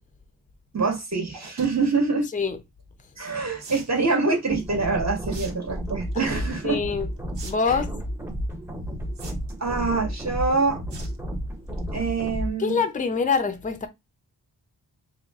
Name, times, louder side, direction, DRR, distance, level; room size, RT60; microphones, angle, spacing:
voice 1, 0.7-2.3 3.2-6.8 7.7-7.8 9.6-10.8 11.9-12.8, right 4 dB, 40° right, 1.5 m, -25 dB
sound 1, 1.3-1.7 3.6-3.9 5.3-5.5 5.9-6.2 7.3-7.5 7.8-7.9 9.2-9.7 10.9-11.2 11.6-11.8 12.2-12.3 12.5-12.6, right 4 dB, 80° right, 1.0 m, -41 dB
sound 2, 4.5-12.5, equal, 5° right, 0.8 m, -32 dB
voice 2, 6.2-7.1 7.4-7.9 12.6-13.9, left 5 dB, 20° left, 0.5 m, -25 dB
3.8 x 2.1 x 3.5 m
wide cardioid pair, 90°, 42 cm